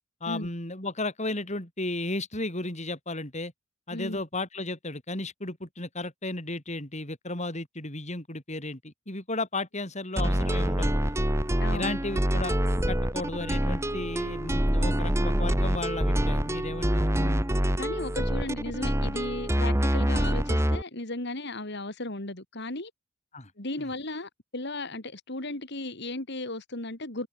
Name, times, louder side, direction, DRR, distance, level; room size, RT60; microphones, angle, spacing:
voice 1, 0.2-3.5 3.9-11.1 11.7-12.6 12.9-17.1 23.3-23.5 23.8-23.9, left 2 dB, 35° left, 6.8 m, -34 dB
voice 2, 3.9-4.2 11.6-11.9 17.1-17.4 17.8-22.9 23.6-27.3, left 2 dB, 60° left, 3.6 m, -35 dB
sound 1, 10.2-20.8, right 1 dB, 15° right, 1.7 m, -26 dB
head